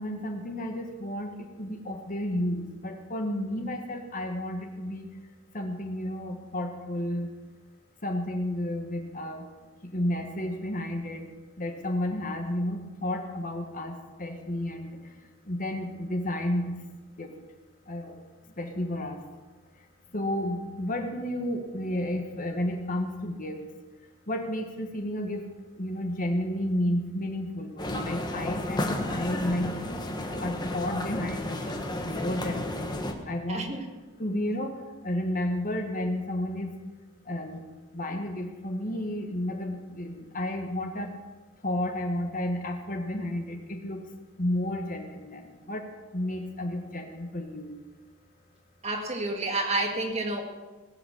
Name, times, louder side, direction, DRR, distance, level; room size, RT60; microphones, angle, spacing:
voice 1, 0.0-1.3 1.6-5.1 5.5-7.3 8.0-9.4 9.9-11.2 11.6-15.0 15.5-16.7 17.2-17.3 17.9-18.1 18.6-19.2 20.1-23.6 24.3-25.4 25.8-29.7 30.4-31.7 32.0-32.8 33.3-33.7 34.2-34.7 35.0-36.7 37.3-37.6 37.9-41.1 41.6-44.0 44.4-45.8 46.1-47.7, left 1 dB, 40° left, 4 dB, 1.5 m, -31 dB
sound 1, 27.8-33.1, left 1 dB, 20° left, 1.3 m, -32 dB
voice 2, 33.5-33.9 48.8-50.4, right 2 dB, 30° right, 3 dB, 1.9 m, -29 dB
19.5 x 8.1 x 7.2 m, 1.3 s
head